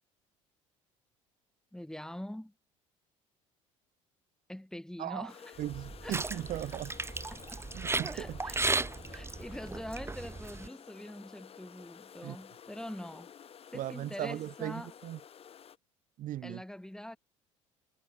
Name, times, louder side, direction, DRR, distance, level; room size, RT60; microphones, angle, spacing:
voice 1, 1.7-2.5 4.5-5.6 6.0-6.2 7.3-7.6 8.1-8.6 9.1-13.3 13.7-14.9 16.4-17.2, left 1 dB, 5° left, 2.2 m, -44 dB
voice 2, 5.0-5.3 5.6-6.9 7.7-8.4 12.2-12.4 13.7-15.2 16.2-16.6, right 13 dB, 50° right, 1.6 m, -38 dB
sound 1, 5.3-15.8, left 8 dB, 35° left, 1.3 m, -52 dB
sound 2, 5.6-10.7, right 3 dB, 15° right, 1.3 m, -35 dB
sound 3, 6.4-11.8, right 10 dB, 85° right, 7.8 m, -65 dB
hypercardioid pair, 65°, 17 cm